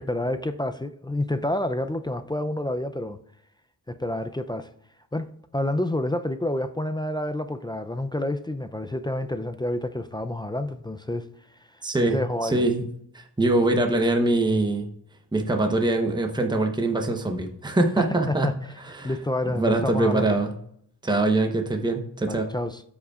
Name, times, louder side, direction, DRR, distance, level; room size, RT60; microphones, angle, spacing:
voice 1, 0.0-3.2 3.9-4.7 5.1-11.3 12.0-12.7 18.0-18.5 19.0-20.4 22.3-22.8, left 1 dB, 10° left, 0.4 m, -28 dB
voice 2, 11.8-12.2 12.4-12.9 13.1-14.9 15.3-18.5 18.8-19.1 19.5-20.5 21.0-22.5, right 2 dB, 10° right, 0.9 m, -23 dB
13.0 x 5.2 x 2.4 m
cardioid pair, 80°, 42 cm